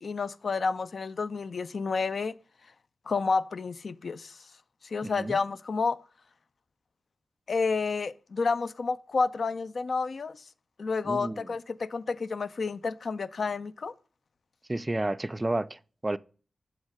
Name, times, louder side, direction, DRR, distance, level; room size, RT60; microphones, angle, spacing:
voice 1, 0.0-2.3 3.1-4.4 4.8-6.0 7.5-10.4 10.8-13.9, left 4 dB, 70° left, 0.3 m, -30 dB
voice 2, 5.0-5.4 11.1-11.5 14.7-16.2, right 2 dB, 30° right, 0.3 m, -31 dB
7.3 x 3.2 x 4.8 m
cardioid pair, 40°, 0 cm